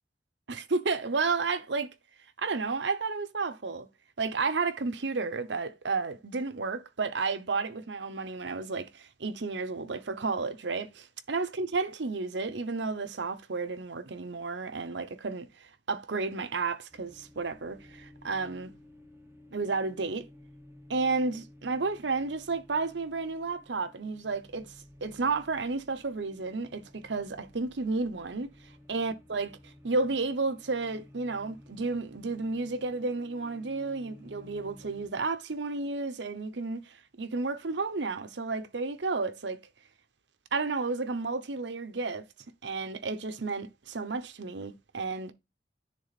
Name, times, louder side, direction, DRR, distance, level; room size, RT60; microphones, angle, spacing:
voice 1, 0.5-1.9 2.4-3.9 4.2-15.5 15.9-18.7 19.5-20.3 20.9-24.7 25.0-28.5 28.9-29.5 29.8-39.6 40.5-42.3 42.6-45.3, right 3 dB, 80° right, 0.9 m, -32 dB
sound 1, 16.9-35.1, left 1 dB, 15° right, 1.2 m, -55 dB
10.0 x 3.7 x 4.1 m
head